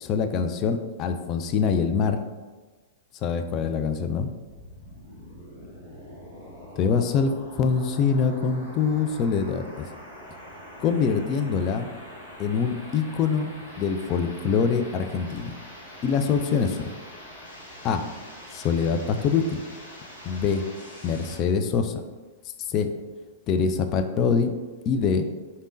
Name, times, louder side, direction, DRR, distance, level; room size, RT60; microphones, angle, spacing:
voice 1, 0.0-2.2 3.2-4.3 6.8-9.9 10.8-11.9 12.4-13.5 13.8-15.5 16.0-16.9 17.8-18.0 18.5-19.6 20.2-20.6 21.0-22.0 22.7-22.9 23.5-24.5 24.9-25.3, left 6 dB, 35° left, 8 dB, 0.3 m, -24 dB
sound 1, 4.4-21.4, equal, 75° left, 1.4 m, -44 dB
4.1 x 3.5 x 2.5 m, 1.3 s
figure-of-eight pair, 105°, 0 cm